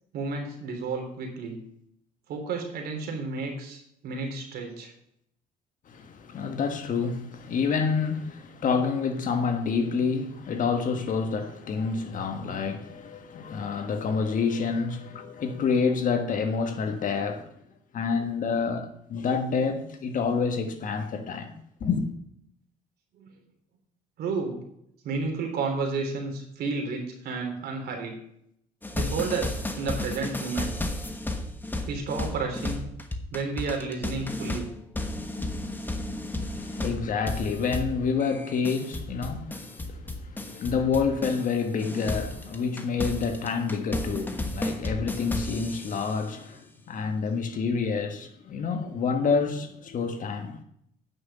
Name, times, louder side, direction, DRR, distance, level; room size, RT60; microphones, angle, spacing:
voice 1, 0.1-1.6 2.3-4.9 23.2-23.3 24.2-24.6 25.0-28.2 28.9-30.7 31.9-32.8 33.3-34.7 36.8-36.9, right 4 dB, 70° right, 3.4 m, -31 dB
voice 2, 5.9-17.5 17.9-21.5 21.8-22.0 36.3-50.6, left 5 dB, 50° left, 1.5 m, -28 dB
sound 1, 28.8-41.5 41.8-46.2, left 2 dB, 10° left, 1.2 m, -33 dB
9.5 x 6.4 x 6.7 m
cardioid pair, 110°, 17 cm